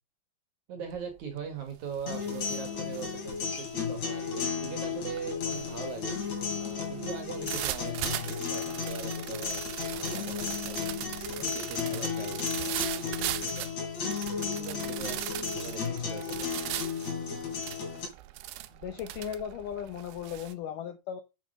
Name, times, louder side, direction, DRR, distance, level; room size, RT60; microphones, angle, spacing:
voice 1, 0.7-6.2 6.6-8.2 8.5-9.6 9.9-10.8 11.4-13.7 14.3-16.5, right 6 dB, 60° right, 6 dB, 2.2 m, -41 dB
sound 1, 0.9-1.2 1.6-20.5, right 14 dB, 80° right, 2.1 m, -39 dB
sound 2, 2.1-18.1, left 6 dB, 45° left, 3.9 m, -34 dB
voice 2, 18.8-21.2, left 9 dB, 90° left, 9 dB, 1.8 m, -37 dB
8.4 x 7.4 x 5.4 m, 0.27 s
omnidirectional pair, 5.1 m